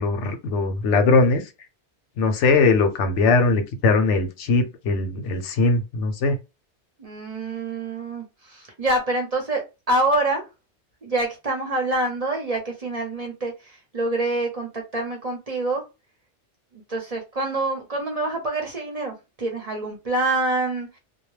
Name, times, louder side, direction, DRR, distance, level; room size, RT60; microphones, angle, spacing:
voice 1, 0.0-1.4 2.2-6.4, left 3 dB, 85° left, 0.9 m, -20 dB
voice 2, 7.0-10.4 11.0-15.8 16.9-20.9, right 2 dB, 40° right, 0.7 m, -26 dB
2.2 x 2.1 x 3.1 m
omnidirectional pair, 1.2 m